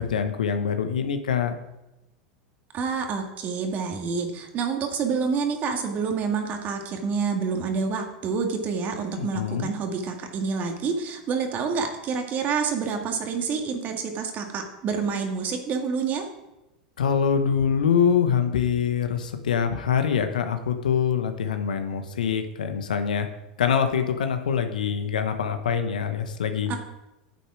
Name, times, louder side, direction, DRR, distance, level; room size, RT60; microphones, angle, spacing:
voice 1, 0.0-1.5 9.1-9.7 17.0-23.3 23.6-26.8, left 7 dB, 75° left, 8 dB, 1.1 m, -24 dB
voice 2, 2.7-16.2 26.7-26.8, right 5 dB, 40° right, 3 dB, 2.0 m, -28 dB
9.3 x 8.1 x 4.9 m, 0.94 s
hypercardioid pair, 90°, 4 cm